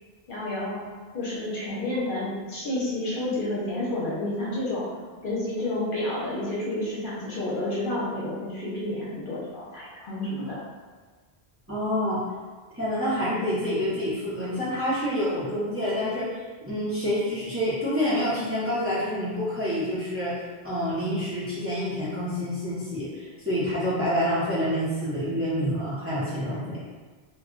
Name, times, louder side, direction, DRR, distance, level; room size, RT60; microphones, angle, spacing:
voice 1, 0.3-0.8 1.1-4.8 5.2-10.6, left 1 dB, 60° left, -7 dB, 0.9 m, -30 dB
voice 2, 11.7-12.2 12.7-20.4 20.6-26.8, equal, 15° right, -11 dB, 0.7 m, -27 dB
2.2 x 2.2 x 3.7 m, 1.4 s
omnidirectional pair, 1.0 m